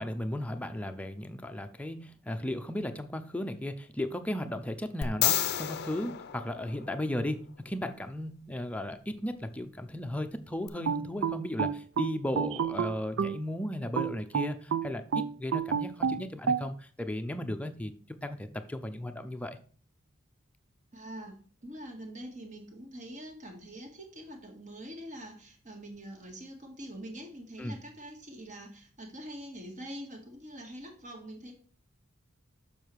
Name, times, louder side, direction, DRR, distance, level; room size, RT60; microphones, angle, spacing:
voice 1, 0.0-7.4 7.6-19.6 27.6-27.8, left 1 dB, 5° left, 6 dB, 0.6 m, -35 dB
sound 1, 5.0-7.3 10.7-10.8, left 12 dB, 55° left, 0.5 m, -31 dB
sound 2, 10.8-13.4 14.0-16.7, right 6 dB, 65° right, 0.4 m, -30 dB
voice 2, 20.9-31.5, equal, 40° right, 3 dB, 1.8 m, -44 dB
7.0 x 5.6 x 4.7 m, 0.43 s
head